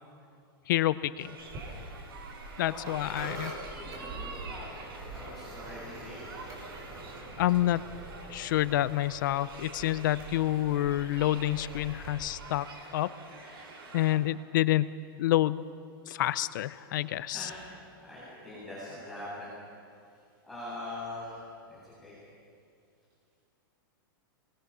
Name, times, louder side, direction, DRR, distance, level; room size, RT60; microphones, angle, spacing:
voice 1, 0.7-1.4 2.6-3.5 7.4-7.8 8.3-12.7 12.9-13.1 13.9-15.6 16.1-17.5, left 14 dB, 55° left, 16 dB, 0.6 m, -28 dB
sound 1, 1.2-14.2, right 4 dB, 90° right, 5.5 m, -47 dB
sound 2, 1.4-12.1, right 1 dB, 25° right, 4.8 m, -45 dB
voice 2, 2.5-4.6 5.1-6.3 13.4-13.9 16.8-16.9 17.2-17.7 18.0-19.5 20.1-22.2, left 1 dB, ahead, -11 dB, 7.3 m, -44 dB
26.0 x 21.5 x 5.6 m, 2.5 s
supercardioid pair, 170°, 12 cm